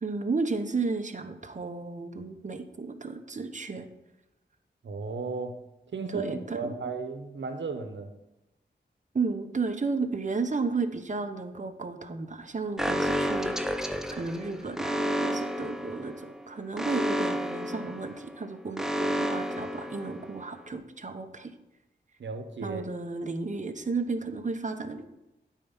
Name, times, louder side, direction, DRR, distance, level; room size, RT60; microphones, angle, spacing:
voice 1, 0.0-3.9 6.1-6.7 9.1-13.5 14.1-21.5 22.6-25.0, right 4 dB, 40° right, 7 dB, 1.0 m, -33 dB
voice 2, 4.8-5.6 5.9-8.1 22.2-22.8, right 4 dB, 85° right, 7 dB, 1.1 m, -34 dB
Alarm, 12.8-20.5, equal, 5° right, 0.7 m, -31 dB
9.2 x 4.7 x 7.2 m, 0.93 s
cardioid pair, 55°, 19 cm